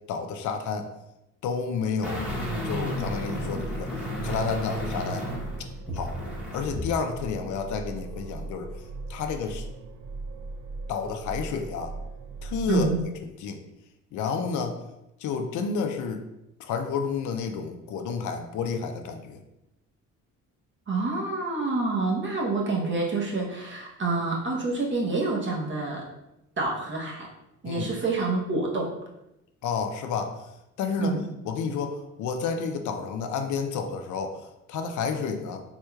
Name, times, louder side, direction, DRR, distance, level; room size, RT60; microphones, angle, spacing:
voice 1, 0.1-0.9 1.4-2.2 2.6-3.9 4.2-5.3 5.9-6.2 6.5-8.7 9.1-9.7 10.9-11.9 12.4-12.9 13.2-13.6 14.1-14.8 15.2-16.2 16.6-19.4 27.6-27.9 29.6-30.4 30.8-31.1 31.5-35.6, left 5 dB, 75° left, 6 dB, 0.5 m, -30 dB
sound 1, 2.0-6.9 7.3-7.4, equal, 5° right, 1.0 m, -32 dB
sound 2, 2.2-13.0, right 3 dB, 85° right, 0.5 m, -39 dB
voice 2, 12.7-13.0 20.9-26.1 26.6-27.3 27.6-28.9 31.0-31.3, right 3 dB, 40° right, -2 dB, 0.9 m, -27 dB
3.5 x 3.1 x 2.3 m, 0.89 s
cardioid pair, 90°, 30 cm